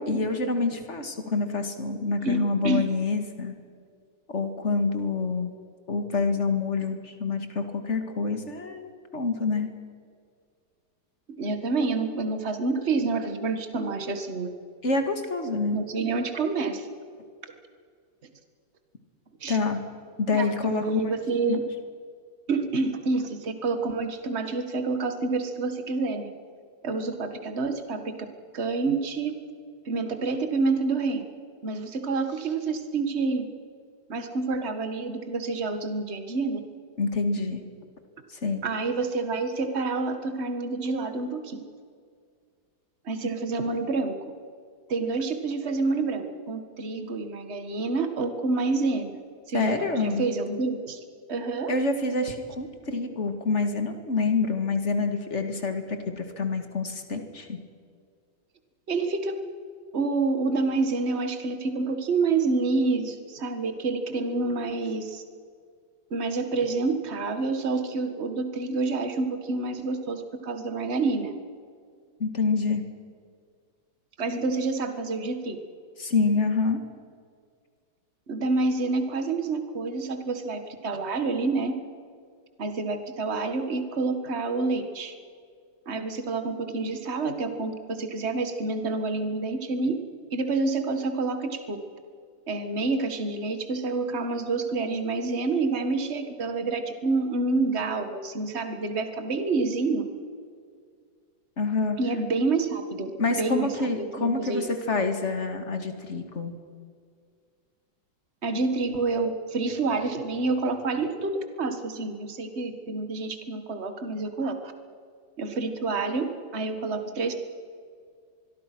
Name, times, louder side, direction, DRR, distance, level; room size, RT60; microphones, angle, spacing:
voice 1, 0.0-3.5 4.3-5.5 5.9-9.7 14.8-15.8 19.5-19.8 20.2-21.0 21.5-21.6 37.0-37.6 38.3-38.6 49.5-50.2 51.7-57.6 72.2-72.8 76.0-76.8 101.6-102.0 103.2-106.5, left 3 dB, 40° left, 6 dB, 2.2 m, -27 dB
voice 2, 2.2-2.9 11.4-14.5 15.7-16.9 19.4-19.6 20.3-21.6 22.5-26.3 26.8-28.2 28.5-29.3 29.9-31.3 31.6-33.4 34.1-36.6 38.6-41.6 43.1-44.2 44.9-49.1 49.5-51.0 51.3-51.7 58.9-59.4 59.9-65.2 66.1-71.3 74.2-75.6 78.3-81.7 82.6-85.1 85.9-90.0 90.3-91.8 92.5-100.0 102.0-103.1 103.4-104.6 108.4-114.7 115.4-117.3, right 3 dB, 35° right, 7 dB, 1.9 m, -28 dB
25.5 x 21.5 x 6.2 m, 2.1 s
omnidirectional pair, 2.0 m